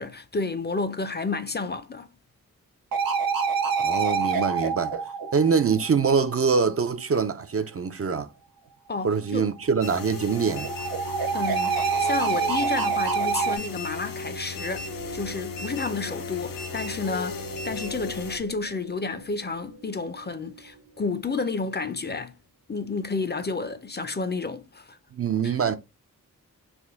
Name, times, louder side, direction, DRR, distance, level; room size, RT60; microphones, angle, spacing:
voice 1, 0.0-2.1 8.9-9.5 11.3-22.4 22.7-25.0 25.4-25.6, left 4 dB, 30° left, 0.5 m, -31 dB
sound 1, 2.9-6.2 9.7-13.6, right 5 dB, 85° right, 0.7 m, -26 dB
voice 2, 3.8-5.0 5.3-8.3 9.0-10.7 25.1-25.8, right 5 dB, 45° right, 0.5 m, -24 dB
sound 2, 9.8-18.4, left 4 dB, 75° left, 0.7 m, -35 dB
sound 3, 14.4-21.8, right 3 dB, 65° right, 1.0 m, -45 dB
3.4 x 2.1 x 3.5 m
cardioid pair, 50°, 34 cm